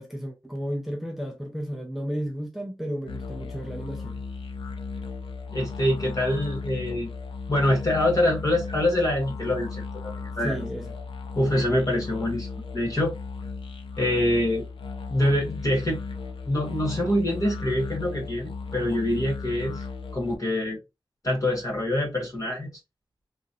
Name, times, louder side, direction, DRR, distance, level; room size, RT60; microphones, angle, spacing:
voice 1, 0.0-4.2 10.4-10.9, equal, ahead, 0.5 m, -33 dB
sound 1, 3.1-20.4, left 4 dB, 90° left, 0.5 m, -36 dB
voice 2, 5.5-7.1 7.5-10.6 11.3-12.5 12.7-13.2 14.0-14.6 15.1-16.0 16.5-19.8 20.1-20.8 21.2-22.8, left 1 dB, 40° left, 1.5 m, -25 dB
3.0 x 2.4 x 2.6 m
wide cardioid pair, 95°, 9 cm